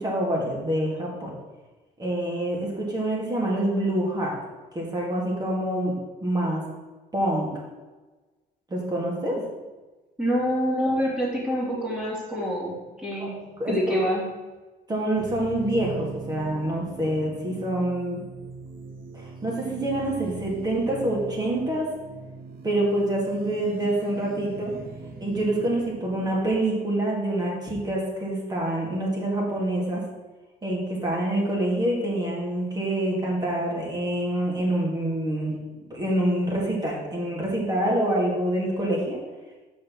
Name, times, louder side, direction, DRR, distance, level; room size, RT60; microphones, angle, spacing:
voice 1, 0.0-1.3 2.0-4.4 4.7-5.9 6.2-6.6 7.1-7.5 8.7-9.4 13.2-13.3 13.6-14.0 14.9-18.2 19.1-21.8 22.6-24.7 25.2-30.0 30.6-35.5 35.9-39.2, right 1 dB, 25° right, -3 dB, 2.8 m, -26 dB
voice 2, 10.2-14.3, equal, 5° right, -6 dB, 2.9 m, -26 dB
sound 1, 15.2-26.4, right 4 dB, 60° right, 1.2 m, -40 dB
6.4 x 5.5 x 6.3 m, 1.2 s
cardioid pair, 110°, 17 cm